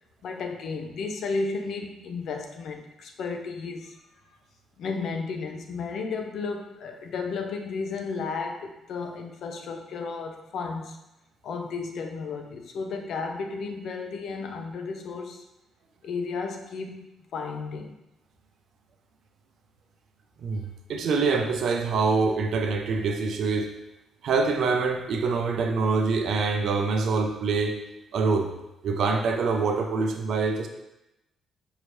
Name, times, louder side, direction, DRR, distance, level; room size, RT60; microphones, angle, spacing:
voice 1, 0.2-4.0 4.8-11.0 11.4-15.4 16.0-17.1 17.3-17.9, left 4 dB, 70° left, 4 dB, 0.5 m, -33 dB
voice 2, 20.4-23.7 24.2-27.8 28.1-28.5 28.8-30.7, right 4 dB, 70° right, 4 dB, 0.5 m, -25 dB
4.7 x 2.7 x 3.1 m, 0.91 s
cardioid pair, 90°, 0 cm